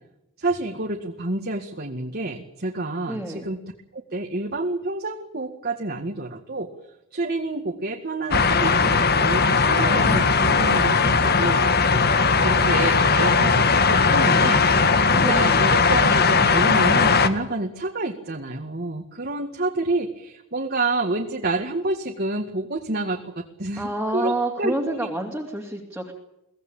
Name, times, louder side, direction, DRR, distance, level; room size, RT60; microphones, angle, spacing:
voice 1, 0.4-6.7 7.1-11.6 12.4-25.1, right 2 dB, 45° right, 3 dB, 2.0 m, -28 dB
voice 2, 3.1-3.5 15.2-15.7 23.8-26.1, right 1 dB, 5° right, -1 dB, 2.8 m, -29 dB
sound 1, 8.3-17.3, left 4 dB, 45° left, 1.7 m, -18 dB
23.5 x 18.0 x 9.0 m, 0.88 s
head